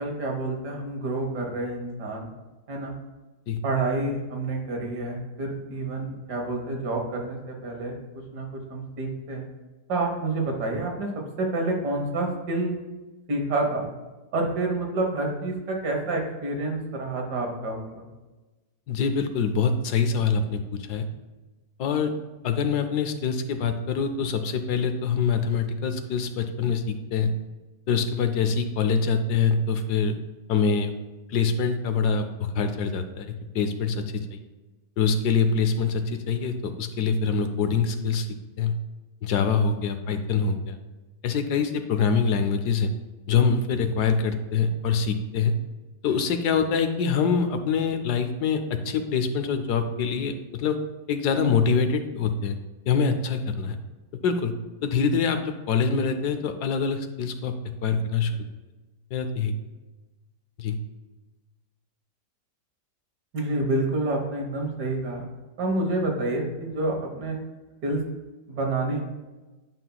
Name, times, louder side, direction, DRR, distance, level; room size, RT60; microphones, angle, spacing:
voice 1, 0.0-2.3 2.7-2.9 3.6-9.5 9.9-11.1 11.4-12.7 13.3-13.9 14.3-18.1 63.3-65.2 65.6-67.4 67.8-68.0 68.5-69.0, right 2 dB, 70° right, 1 dB, 1.8 m, -28 dB
voice 2, 18.9-21.1 21.8-22.1 22.4-27.3 27.9-30.2 30.5-30.9 31.3-34.4 35.0-38.3 38.6-38.8 39.2-40.8 41.2-42.9 43.3-45.6 46.0-50.8 51.1-52.6 52.9-53.8 54.2-54.5 54.8-57.5 57.8-58.4 59.1-59.5 60.6-60.8, left 5 dB, 70° left, 8 dB, 1.2 m, -25 dB
11.0 x 5.7 x 2.3 m, 1.2 s
omnidirectional pair, 1.8 m